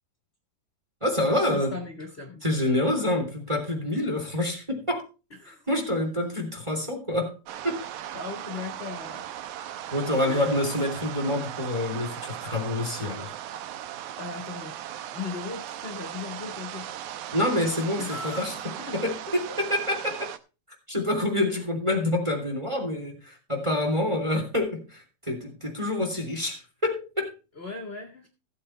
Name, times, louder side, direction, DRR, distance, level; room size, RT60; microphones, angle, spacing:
voice 1, 1.0-1.8 2.4-5.0 5.5-7.4 7.6-7.8 9.9-13.3 17.3-18.5 18.9-20.3 20.9-27.3, left 1 dB, 10° right, 2.6 m, -27 dB
voice 2, 1.5-2.4 5.3-5.7 8.1-9.2 10.3-10.5 14.2-14.8 15.1-17.1 18.0-18.5 18.9-19.6 21.5-21.7 27.6-28.3, left 4 dB, 45° left, 0.8 m, -38 dB
sound 1, 7.5-20.4, right 11 dB, 75° right, 1.9 m, -38 dB
16.0 x 8.4 x 3.3 m
omnidirectional pair, 4.2 m